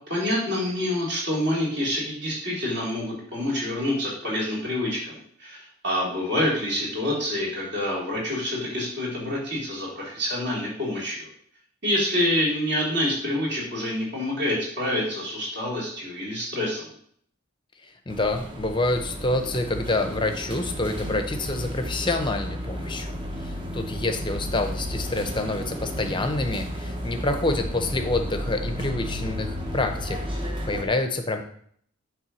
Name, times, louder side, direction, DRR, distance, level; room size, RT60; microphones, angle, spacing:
voice 1, 0.1-11.3 11.8-16.9, left 1 dB, 50° right, -6 dB, 3.7 m, -27 dB
voice 2, 17.8-30.2 30.7-31.4, left 2 dB, 20° left, 6 dB, 0.7 m, -27 dB
sound 1, 18.1-30.8, equal, 20° right, 0.9 m, -33 dB
8.8 x 3.5 x 6.2 m, 0.64 s
head